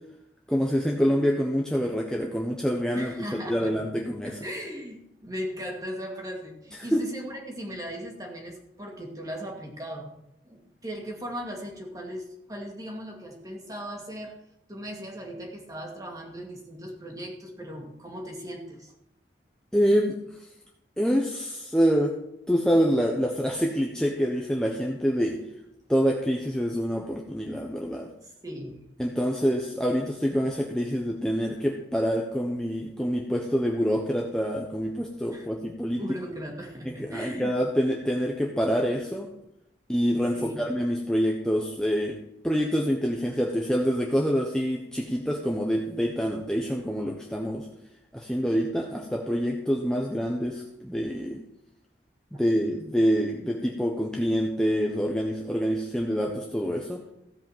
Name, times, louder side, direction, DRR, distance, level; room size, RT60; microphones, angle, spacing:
voice 1, 0.5-4.4 6.9-7.1 19.7-20.2 21.0-22.2 22.5-25.4 25.9-28.1 29.0-36.0 36.8-39.3 39.9-47.7 48.1-51.4 52.3-57.0, equal, 5° left, -1 dB, 1.0 m, -26 dB
voice 2, 3.0-10.1 10.4-14.3 14.7-18.9 28.2-28.8 35.3-35.5 36.0-37.5 40.3-40.6 52.3-52.4, equal, 20° right, 1 dB, 2.2 m, -38 dB
15.5 x 5.5 x 7.3 m, 0.83 s
head